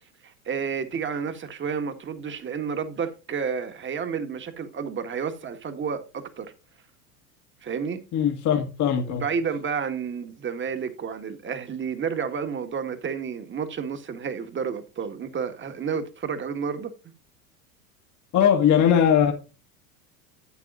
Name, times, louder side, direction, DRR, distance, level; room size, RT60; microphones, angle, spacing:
voice 1, 0.2-6.5 7.6-8.0 9.1-16.9, right 6 dB, 25° right, 1.7 m, -31 dB
voice 2, 8.1-9.2 18.3-19.3, left 8 dB, 40° left, 1.6 m, -20 dB
12.0 x 8.3 x 2.5 m
hypercardioid pair, 85°, 45 cm